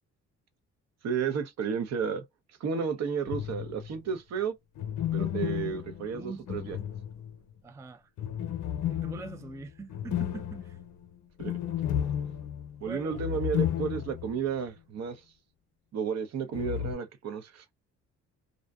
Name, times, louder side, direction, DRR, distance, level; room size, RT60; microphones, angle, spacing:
voice 1, 1.0-2.2 2.6-4.5 5.1-6.8 11.4-11.6 12.8-15.2 15.9-17.6, right 6 dB, 60° right, 0.6 m, -32 dB
sound 1, 3.2-4.0 4.8-7.5 8.2-14.4 14.7-14.8 16.5-16.9, left 10 dB, 75° left, 0.6 m, -33 dB
voice 2, 6.1-6.4 7.6-8.1 8.9-10.8 12.8-13.2, right 3 dB, 10° right, 0.3 m, -42 dB
2.6 x 2.1 x 2.2 m
cardioid pair, 90°, 30 cm